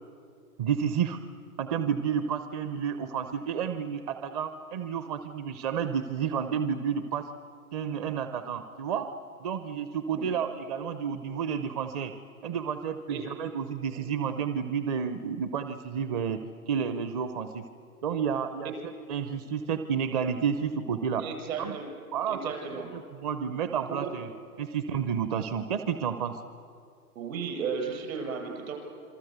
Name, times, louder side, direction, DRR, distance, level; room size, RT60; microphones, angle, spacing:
voice 1, 0.6-1.2 1.6-7.3 7.7-9.1 9.4-12.1 12.4-16.4 16.7-17.6 18.0-21.3 21.6-21.8 22.1-22.4 22.9-24.3 24.6-26.4, right 7 dB, 25° right, 9 dB, 0.6 m, -30 dB
voice 2, 21.2-21.9 22.3-22.9 24.0-24.1 27.2-28.8, right 5 dB, 60° right, 2 dB, 7.5 m, -34 dB
27.0 x 24.0 x 8.1 m, 2.4 s
hypercardioid pair, 140°, 47 cm